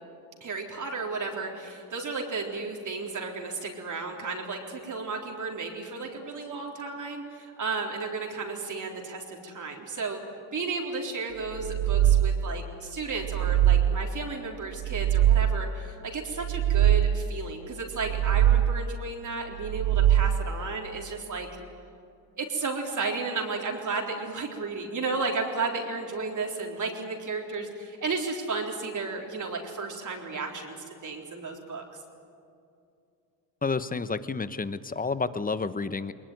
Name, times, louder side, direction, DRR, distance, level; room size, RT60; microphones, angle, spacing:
voice 1, 0.4-10.2 10.5-21.5 22.4-32.0, right 4 dB, 45° right, 1 dB, 3.9 m, -33 dB
sound 1, 11.5-12.6 13.1-14.2 14.7-15.8 16.3-17.4 17.9-19.0 19.5-20.6, right 11 dB, 65° right, 0.7 m, -23 dB
voice 2, 33.6-36.1, left 4 dB, 20° left, 14 dB, 1.0 m, -30 dB
21.0 x 21.0 x 9.4 m, 2.6 s
supercardioid pair, 80°, 43 cm